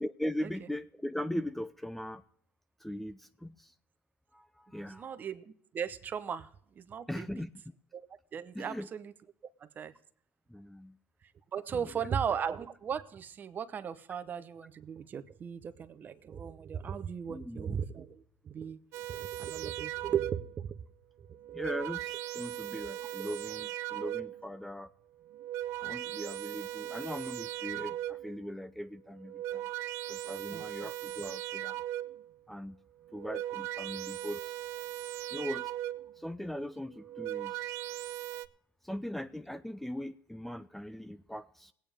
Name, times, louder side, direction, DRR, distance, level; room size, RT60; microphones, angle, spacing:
voice 1, 0.0-2.2 2.8-3.7 4.3-5.2 7.1-7.5 8.5-8.9 10.5-11.0 12.0-12.1 17.3-17.8 21.5-24.9 25.8-29.6 30.1-31.8 32.5-32.8 33.1-34.5 35.3-35.7 36.2-37.7 38.8-41.7, equal, 5° left, 14 dB, 0.4 m, -40 dB
voice 2, 4.8-6.5 6.9-7.3 7.9-8.1 8.3-9.1 9.6-9.9 11.5-18.8 19.1-20.8 21.2-21.3 23.0-23.1 30.5-30.6, right 7 dB, 40° right, 13 dB, 0.8 m, -37 dB
sound 1, 18.9-20.6 21.3-24.5 25.2-28.4 29.1-32.3 33.0-36.2 36.9-38.4, right 13 dB, 70° right, 0.5 m, -38 dB
20.5 x 8.9 x 3.4 m, 0.65 s
supercardioid pair, 100°, 5 cm